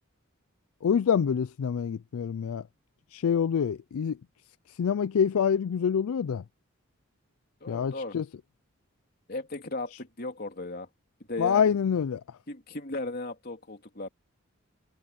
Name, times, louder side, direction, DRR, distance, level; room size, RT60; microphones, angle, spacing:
voice 1, 0.8-2.6 3.1-4.2 4.8-6.4 7.7-8.2 11.4-12.2, left 7 dB, 80° left, 0.4 m, -26 dB
voice 2, 7.6-8.2 9.3-10.9 11.3-11.8 12.5-14.1, left 2 dB, 45° left, 3.1 m, -36 dB
head